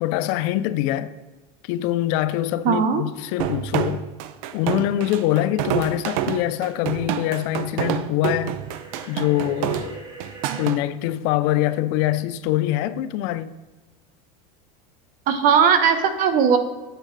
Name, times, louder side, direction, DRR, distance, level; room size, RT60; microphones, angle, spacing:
voice 1, 0.0-1.1 1.6-4.1 4.5-8.6 9.1-10.0 10.6-13.5, left 14 dB, 60° left, 0.5 m, -24 dB
voice 2, 2.6-3.0 15.3-16.6, right 7 dB, 45° right, 1.0 m, -18 dB
sound 1, 3.4-10.8, right 11 dB, 70° right, 0.7 m, -27 dB
sound 2, 8.6-10.7, right 3 dB, 25° right, 2.4 m, -42 dB
9.0 x 7.6 x 3.3 m
supercardioid pair, 125°, 19 cm